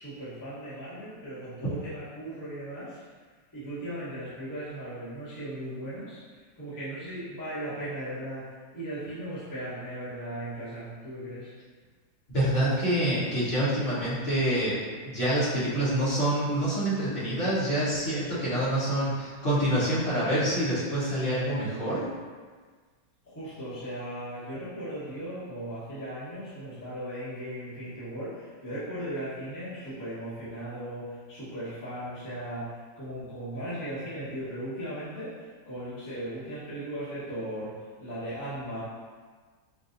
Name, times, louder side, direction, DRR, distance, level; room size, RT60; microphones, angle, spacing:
voice 1, 0.0-3.0 3.5-6.2 6.6-11.5 23.2-38.8, right 1 dB, 15° left, -12 dB, 1.0 m, -37 dB
voice 2, 12.3-22.1, right 1 dB, 40° left, -13 dB, 1.3 m, -27 dB
5.3 x 2.6 x 2.6 m, 1.5 s
omnidirectional pair, 2.1 m